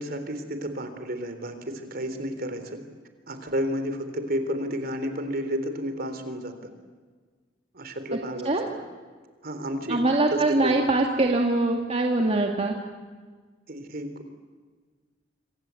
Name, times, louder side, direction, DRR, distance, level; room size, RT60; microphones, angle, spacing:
voice 1, 0.0-2.8 3.3-6.5 7.7-8.7 9.4-10.0 10.3-10.8 13.7-14.1, equal, 50° right, 8 dB, 3.7 m, -31 dB
voice 2, 9.9-12.8, right 2 dB, 35° right, 1 dB, 2.1 m, -23 dB
26.5 x 26.0 x 8.4 m, 1.5 s
head